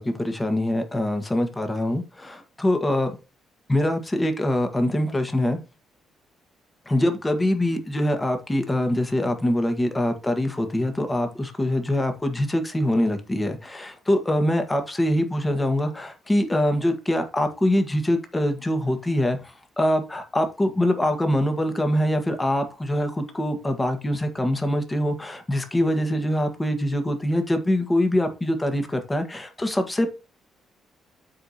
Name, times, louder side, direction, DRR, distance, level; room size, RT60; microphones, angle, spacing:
voice 1, 0.0-3.1 3.7-5.6 6.8-30.2, left 1 dB, 15° left, 7 dB, 1.6 m, -24 dB
12.5 x 4.8 x 2.9 m, 0.32 s
cardioid pair, 90°, 0 cm